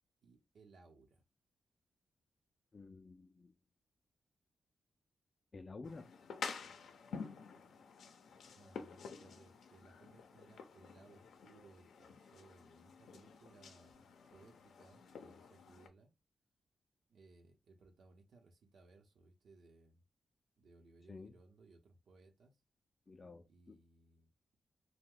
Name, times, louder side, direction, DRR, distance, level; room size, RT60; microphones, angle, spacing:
voice 1, 0.2-1.2 6.6-6.7 8.6-16.1 17.1-20.0 20.6-22.6 23.5-24.6, right 3 dB, 70° right, 0.8 m, -64 dB
voice 2, 2.7-3.5 5.5-6.1 21.1-21.4 23.1-23.8, left 3 dB, 35° left, 0.3 m, -51 dB
sound 1, 5.8-15.9, left 5 dB, 90° left, 0.5 m, -50 dB
2.8 x 2.1 x 3.7 m
wide cardioid pair, 125°, 0 cm